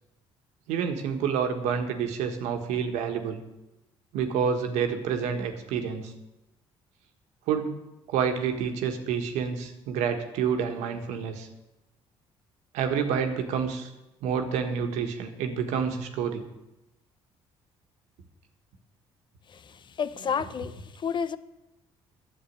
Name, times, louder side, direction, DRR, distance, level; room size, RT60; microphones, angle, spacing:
voice 1, 0.7-3.4 4.1-6.1 7.5-7.8 8.1-11.5 12.7-13.9 14.2-16.5, right 7 dB, 85° right, 5 dB, 1.5 m, -28 dB
voice 2, 19.5-21.4, left 6 dB, 45° left, 15 dB, 0.7 m, -31 dB
10.5 x 7.5 x 9.4 m, 0.96 s
supercardioid pair, 80°, 11 cm